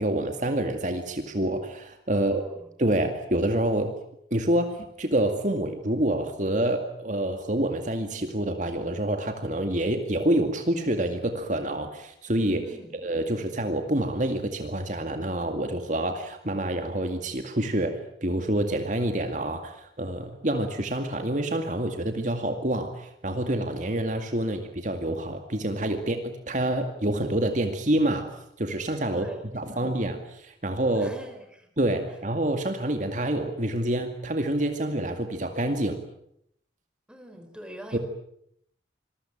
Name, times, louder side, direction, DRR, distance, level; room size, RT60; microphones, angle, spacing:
voice 1, 0.0-2.4 2.8-3.9 4.3-12.7 13.0-29.3 29.5-31.1 31.8-36.0 37.9-38.0, right 1 dB, 45° right, 6 dB, 2.2 m, -27 dB
voice 2, 2.1-2.7 12.6-12.9 24.4-24.5 29.1-30.0 30.9-31.7 37.1-38.0, equal, 5° right, 6 dB, 4.2 m, -45 dB
27.0 x 22.0 x 8.9 m, 0.74 s
head